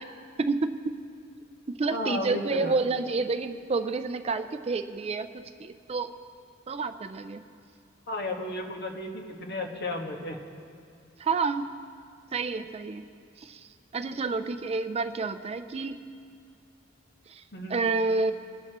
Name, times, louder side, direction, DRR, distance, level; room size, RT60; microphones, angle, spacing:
voice 1, 0.4-1.0 1.7-6.1 6.7-7.4 11.2-11.7 12.3-13.0 13.4-13.7 13.9-16.0 17.3-17.4 17.7-18.3, right 4 dB, 30° right, 10 dB, 0.4 m, -29 dB
voice 2, 1.9-2.8 8.1-10.4 17.5-17.8, left 1 dB, 55° left, 2 dB, 1.5 m, -33 dB
23.0 x 11.5 x 3.0 m, 2.4 s
head